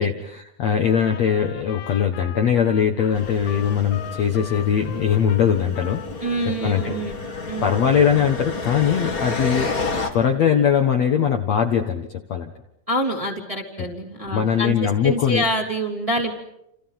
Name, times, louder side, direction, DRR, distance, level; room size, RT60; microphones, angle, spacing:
voice 1, 0.0-6.2 6.6-6.9 7.6-9.7 10.1-12.5 14.3-15.4, left 8 dB, 55° left, 3 dB, 2.1 m, -21 dB
Trumpet, 0.8-7.0 7.3-8.1, left 10 dB, 90° left, 3.4 m, -40 dB
sound 1, 3.1-10.1, left 4 dB, 30° left, 2.0 m, -30 dB
voice 2, 6.2-7.2 7.5-7.9 12.9-16.3, right 1 dB, 10° right, 0 dB, 2.7 m, -26 dB
29.0 x 28.5 x 5.9 m, 0.79 s
omnidirectional pair, 4.6 m